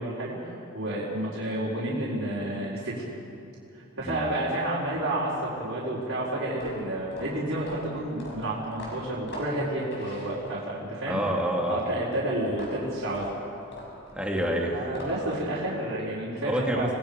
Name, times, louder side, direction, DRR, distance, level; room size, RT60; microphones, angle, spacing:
voice 1, 0.0-3.0 3.7-11.2 11.7-13.3 14.7-16.9, right 1 dB, 65° right, -9 dB, 4.3 m, -30 dB
sound 1, 6.5-10.8 12.5-15.4, left 1 dB, 50° left, 6.2 m, -43 dB
voice 2, 11.1-11.8 14.1-14.8 16.5-16.9, equal, 5° right, -1 dB, 2.5 m, -27 dB
29.0 x 20.0 x 5.2 m, 2.6 s
head